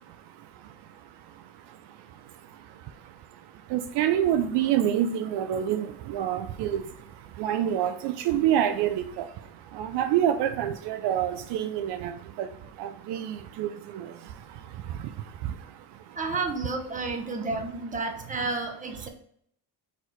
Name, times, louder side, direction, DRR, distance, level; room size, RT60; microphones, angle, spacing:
voice 1, 0.0-16.2 19.0-19.1, right 10 dB, 75° right, 9 dB, 0.5 m, -29 dB
voice 2, 16.1-19.1, right 3 dB, 20° right, 3 dB, 0.8 m, -31 dB
4.2 x 2.6 x 4.4 m, 0.67 s
cardioid pair, 105°, 40 cm